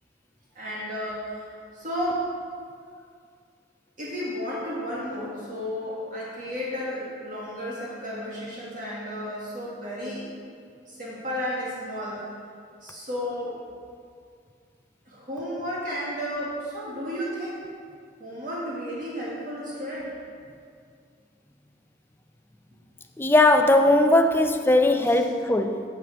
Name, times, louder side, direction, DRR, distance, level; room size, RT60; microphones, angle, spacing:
voice 1, 0.6-2.3 4.0-10.2 10.9-12.3 12.8-13.6 15.1-17.6 18.2-20.1 25.0-25.3, equal, 45° right, -7 dB, 2.0 m, -33 dB
voice 2, 23.2-25.8, left 2 dB, 10° left, 6 dB, 0.4 m, -19 dB
8.1 x 7.7 x 6.0 m, 2.2 s
head